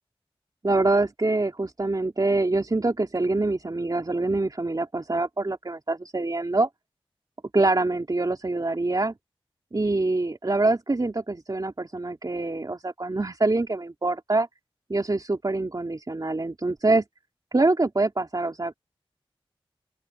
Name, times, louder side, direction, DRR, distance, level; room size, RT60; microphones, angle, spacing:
voice 1, 0.6-6.7 7.5-9.1 9.7-14.5 14.9-17.0 17.5-18.8, right 2 dB, 40° right, 3.2 m, -25 dB
open air
wide cardioid pair, 60°, 10 cm